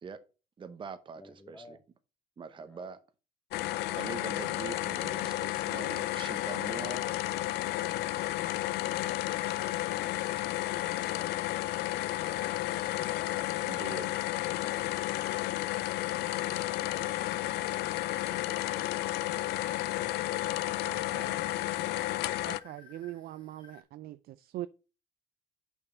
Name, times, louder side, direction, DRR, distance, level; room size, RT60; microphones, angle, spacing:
voice 1, 0.6-1.8 2.4-3.0 4.0-7.0 13.6-14.1, right 6 dB, 30° right, 0.8 m, -43 dB
voice 2, 1.2-1.8 2.6-3.0 10.5-11.4 12.7-13.4, left 2 dB, 10° left, 0.7 m, -52 dB
sound 1, 3.5-22.6, left 15 dB, 80° left, 0.4 m, -32 dB
sound 2, 5.5-23.8, left 3 dB, 30° left, 2.8 m, -59 dB
voice 3, 20.8-21.4 22.4-24.7, right 14 dB, 65° right, 0.4 m, -42 dB
5.5 x 4.6 x 6.3 m
cardioid pair, 110°, 17 cm